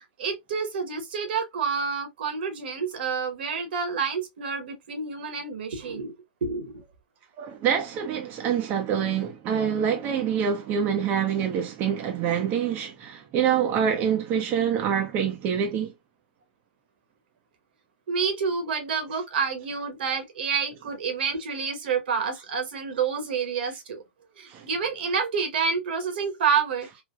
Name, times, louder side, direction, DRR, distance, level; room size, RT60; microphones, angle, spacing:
voice 1, 0.0-6.1 6.4-6.8 18.1-24.0 24.4-26.9, right 6 dB, 70° right, 1.1 m, -28 dB
voice 2, 7.4-15.9 24.5-24.7, right 8 dB, 35° right, 0.6 m, -26 dB
3.2 x 2.2 x 2.3 m
hypercardioid pair, 125°, 6 cm